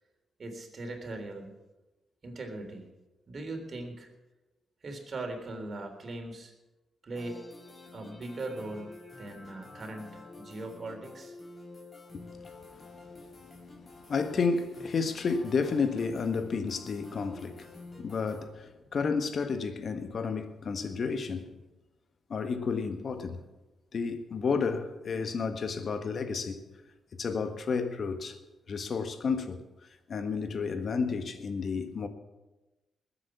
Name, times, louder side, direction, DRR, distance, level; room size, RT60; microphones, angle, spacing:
voice 1, 0.4-1.5 2.2-2.8 3.3-4.1 4.8-6.5 7.0-7.4 7.9-8.9 9.2-11.3, right 2 dB, 50° right, 3.6 m, -39 dB
sound 1, 7.2-18.4, left 2 dB, 35° left, 5.1 m, -49 dB
voice 2, 14.1-17.7 18.0-21.5 22.3-23.4 23.9-26.6 27.1-28.4 28.7-29.6 30.1-32.1, left 5 dB, 55° left, 1.6 m, -31 dB
20.5 x 8.7 x 6.1 m
hypercardioid pair, 45°, 0 cm